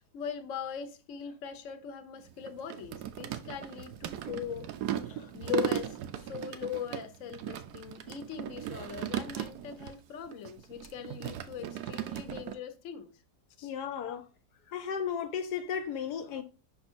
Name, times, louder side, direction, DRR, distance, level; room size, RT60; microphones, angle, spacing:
voice 1, 0.0-4.8 5.3-13.1 13.6-13.7 14.0-14.2, left 8 dB, 55° left, 1.1 m, -40 dB
sound 1, 2.2-10.0 10.3-12.5, right 11 dB, 75° right, 1.2 m, -37 dB
voice 2, 13.6-14.2 14.7-16.4, left 7 dB, 75° left, 1.2 m, -35 dB
5.6 x 4.2 x 4.3 m
omnidirectional pair, 1.8 m